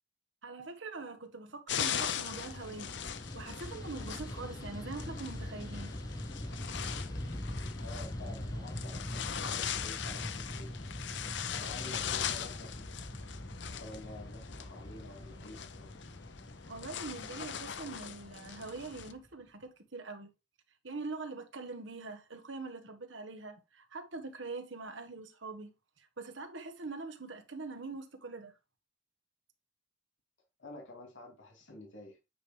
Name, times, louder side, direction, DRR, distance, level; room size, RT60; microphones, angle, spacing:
voice 1, 0.4-2.9 3.3-5.9 16.7-20.3 20.8-25.7 26.0-28.5, right 3 dB, 80° right, 1.3 m, -43 dB
sound 1, 1.7-19.1, left 8 dB, 65° left, 0.6 m, -40 dB
Fixed-wing aircraft airplane, 1.8-19.3, left 1 dB, 20° left, 0.8 m, -43 dB
voice 2, 7.8-10.7 11.5-13.0 13.8-15.9 30.6-32.2, left 2 dB, 80° left, 2.5 m, -49 dB
8.9 x 3.3 x 4.9 m
head